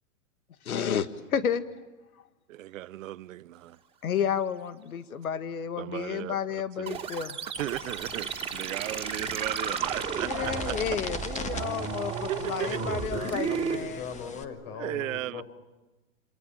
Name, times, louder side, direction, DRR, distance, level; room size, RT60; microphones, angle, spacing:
voice 1, 0.7-1.1 1.3-1.6 4.0-7.4 10.2-14.0, left 8 dB, 90° left, 1.9 m, -31 dB
voice 2, 2.5-3.8 5.8-7.0 7.6-10.7 12.3-13.0 13.8-13.9 14.7-15.4, right 14 dB, 65° right, 1.0 m, -36 dB
sound 1, 6.9-13.8, right 7 dB, 15° right, 2.7 m, -33 dB
sound 2, 7.6-14.4, left 5 dB, 15° left, 1.7 m, -42 dB
voice 3, 8.0-8.3 10.4-10.9 12.6-15.4, left 7 dB, 50° left, 6.8 m, -41 dB
28.5 x 27.0 x 7.4 m
hypercardioid pair, 135°, 42 cm